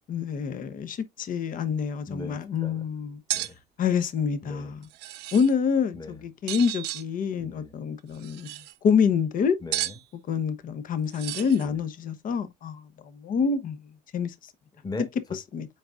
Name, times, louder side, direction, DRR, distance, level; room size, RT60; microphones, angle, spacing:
voice 1, 0.1-3.2 3.8-4.8 5.3-8.5 8.8-9.6 10.3-12.8 13.1-13.8 14.1-14.3 15.5-15.7, left 6 dB, 55° left, 1.0 m, -26 dB
voice 2, 2.1-2.9 3.3-3.6 4.4-4.7 5.9-6.2 7.4-7.8 9.6-10.0 11.6-11.8 14.7-15.4, left 3 dB, 25° left, 1.6 m, -39 dB
sound 1, 3.3-3.5 4.8-5.5 6.5-7.0 8.1-8.7 9.7-10.0 11.1-11.7, right 15 dB, 90° right, 0.6 m, -33 dB
7.7 x 5.0 x 2.5 m
cardioid pair, 110°, 17 cm